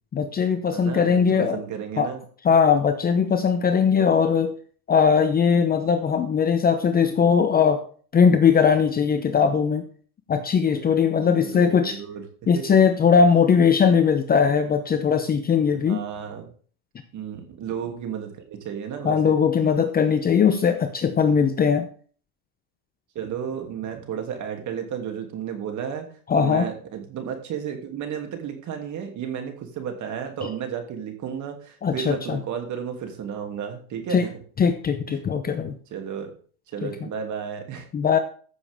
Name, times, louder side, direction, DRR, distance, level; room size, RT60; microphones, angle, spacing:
voice 1, 0.1-1.6 2.0-2.1 2.4-4.5 4.9-7.8 8.1-9.8 10.3-12.0 12.5-16.0 19.0-21.9 26.3-26.7 31.8-32.4 34.1-34.3 34.6-35.7 36.8-36.9 37.9-38.2, left 6 dB, 20° left, 8 dB, 0.8 m, -20 dB
voice 2, 0.6-2.2 2.5-2.8 10.7-12.2 12.5-12.8 13.9-14.0 15.7-16.5 17.1-19.4 19.8-19.9 23.1-26.1 26.4-34.3 35.1-35.6 35.9-36.3 36.7-37.9, right 8 dB, 40° right, 4 dB, 2.8 m, -33 dB
14.5 x 7.0 x 3.6 m, 0.44 s
supercardioid pair, 125°, 45 cm